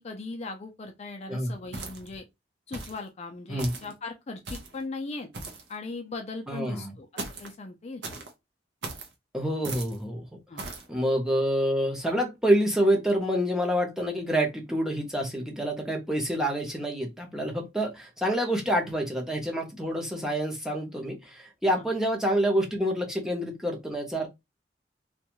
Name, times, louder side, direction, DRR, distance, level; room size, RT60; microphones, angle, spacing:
voice 1, 0.0-2.2 2.7-5.3 5.7-8.0 10.5-10.6 21.7-21.9, left 3 dB, 40° left, 0.4 m, -38 dB
sound 1, 1.7-2.2 2.7-3.0 3.6-3.9 4.4-4.8 5.3-5.7 7.2-7.5 8.0-8.3 8.8-9.1 9.6-10.0 10.6-10.9, right 3 dB, 80° right, 0.7 m, -38 dB
voice 2, 6.5-6.9 9.3-10.2 10.9-24.3, equal, 5° right, 0.7 m, -27 dB
2.5 x 2.2 x 2.9 m
head